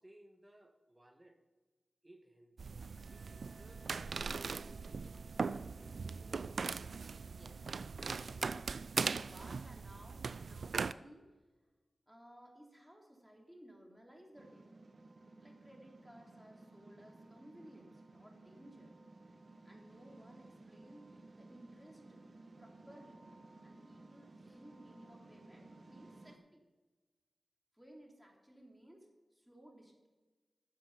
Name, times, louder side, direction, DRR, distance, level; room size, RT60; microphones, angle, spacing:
voice 1, 0.0-1.4 2.0-2.6 3.1-4.2 4.7-6.5 24.4-24.6, right 1 dB, 20° right, 5 dB, 1.7 m, -62 dB
sound 1, 2.6-10.9, right 5 dB, 80° right, 0.4 m, -40 dB
sound 2, 3.0-11.1, right 1 dB, 20° left, 3.4 m, -66 dB
voice 2, 7.2-8.6 8.9-11.3 12.1-14.7 15.4-18.9 19.7-22.2 22.6-23.2 23.6-26.6 27.7-30.1, equal, 5° right, -1 dB, 3.5 m, -59 dB
sound 3, 14.3-26.4, right 2 dB, 60° right, 1.3 m, -57 dB
12.5 x 7.5 x 5.6 m, 1.3 s
cardioid pair, 50°, 0 cm